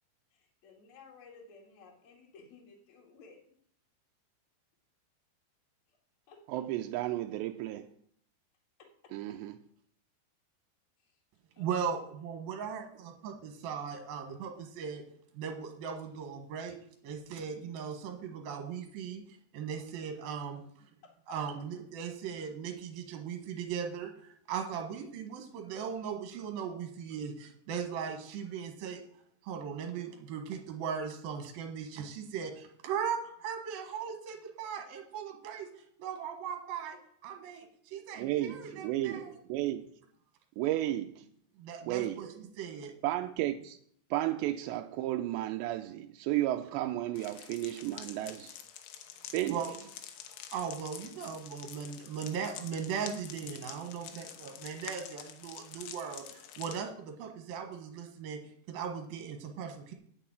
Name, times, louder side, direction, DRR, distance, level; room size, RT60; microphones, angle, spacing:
voice 1, 0.3-3.6 6.3-6.6 8.8-9.4 11.0-11.2 11.6-11.7 21.0-21.4, left 4 dB, 45° left, 2.9 m, -56 dB
voice 2, 6.5-7.9 9.1-9.6 38.2-39.8 40.6-41.3 41.9-42.2 43.0-43.8 44.1-48.6 49.3-49.6, right 14 dB, 80° right, 2.6 m, -33 dB
voice 3, 11.6-15.0 15.3-16.8 17.0-20.9 21.3-29.0 29.4-39.3 41.6-42.9 49.5-49.7 50.5-59.9, right 7 dB, 65° right, 2.7 m, -38 dB
sound 1, 47.2-56.8, left 10 dB, 85° left, 3.4 m, -47 dB
9.2 x 6.8 x 8.8 m
omnidirectional pair, 5.3 m